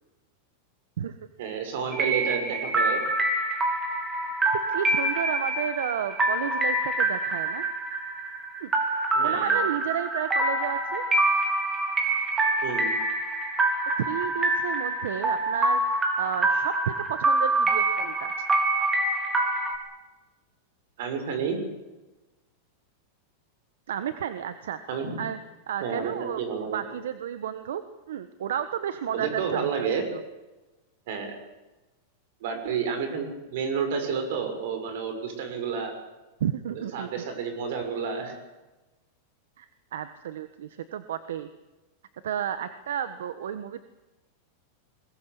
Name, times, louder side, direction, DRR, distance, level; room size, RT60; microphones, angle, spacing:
voice 1, 1.4-3.0 9.1-9.6 12.6-13.0 21.0-21.6 24.9-25.2 25.8-26.8 29.1-30.0 31.1-31.4 32.4-35.9 36.7-38.4, right 6 dB, 65° right, 7 dB, 6.8 m, -30 dB
sound 1, 1.9-19.8, right 2 dB, 15° right, 3.7 m, -26 dB
voice 2, 4.2-7.6 8.6-8.7 9.2-11.0 14.0-18.4 23.9-24.8 25.2-25.4 25.7-26.4 26.7-27.8 28.1-30.2 36.4-37.2 39.6-41.5 42.2-43.8, right 9 dB, 90° right, 11 dB, 1.3 m, -32 dB
22.0 x 19.5 x 8.4 m, 1.1 s
supercardioid pair, 145°, 0 cm